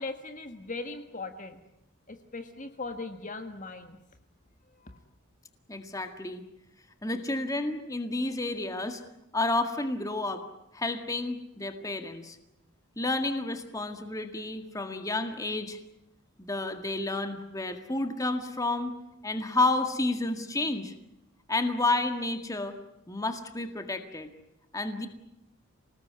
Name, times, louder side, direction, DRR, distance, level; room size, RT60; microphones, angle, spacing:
voice 1, 0.0-1.6 2.1-4.0 4.8-5.0, left 3 dB, 35° left, 7 dB, 1.7 m, -39 dB
voice 2, 5.7-6.4 7.0-9.0 9.3-10.4 10.7-12.4 13.0-15.8 16.4-18.9 19.2-20.9 21.5-22.8 23.1-24.3 24.7-25.1, left 2 dB, 15° left, 7 dB, 1.9 m, -30 dB
27.5 x 19.0 x 9.5 m, 0.87 s
head